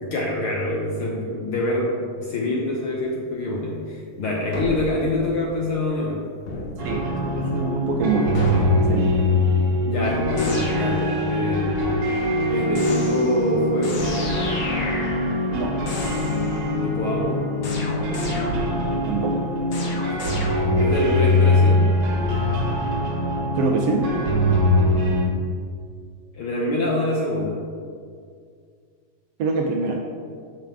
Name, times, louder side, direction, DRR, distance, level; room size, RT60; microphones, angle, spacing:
voice 1, 0.0-6.3 9.8-12.0 12.5-14.2 16.8-17.5 20.7-22.0 26.3-27.6, left 2 dB, 65° left, -2 dB, 1.4 m, -25 dB
sound 1, 4.5-5.8 6.5-6.8 8.3-8.8 10.4-11.2 12.7-13.5 13.8-15.6 15.9-16.6 17.6-18.9 19.7-21.0, left 2 dB, 50° left, 1.6 m, -32 dB
sound 2, 6.8-25.3, left 1 dB, 55° right, 2.3 m, -22 dB
voice 2, 6.9-9.2 15.5-15.7 19.1-19.5 23.6-24.1 29.4-30.0, right 4 dB, 70° right, 1 dB, 1.6 m, -25 dB
13.5 x 5.1 x 3.6 m, 2.2 s
omnidirectional pair, 3.3 m